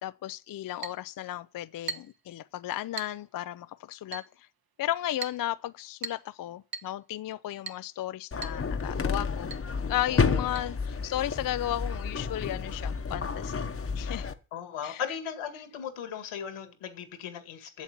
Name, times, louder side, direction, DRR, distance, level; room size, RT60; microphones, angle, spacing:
voice 1, 0.0-4.5 4.8-9.5 9.9-13.7 14.0-14.3 14.8-15.0, left 13 dB, 45° left, 0.4 m, -34 dB
Chink clink, 0.8-1.0 1.9-2.2 3.0-3.2 4.1-4.3 5.2-5.4 6.0-6.3 6.7-6.9 7.7-7.9 8.4-8.6 8.9-9.0 9.5-9.7 10.6-10.7, right 4 dB, 45° right, 1.1 m, -38 dB
sound 1, 8.3-14.3, left 5 dB, 30° left, 1.0 m, -31 dB
voice 2, 10.1-10.7 14.5-17.8, left 8 dB, 80° left, 2.2 m, -38 dB
8.3 x 7.2 x 8.7 m
cardioid pair, 85°, 49 cm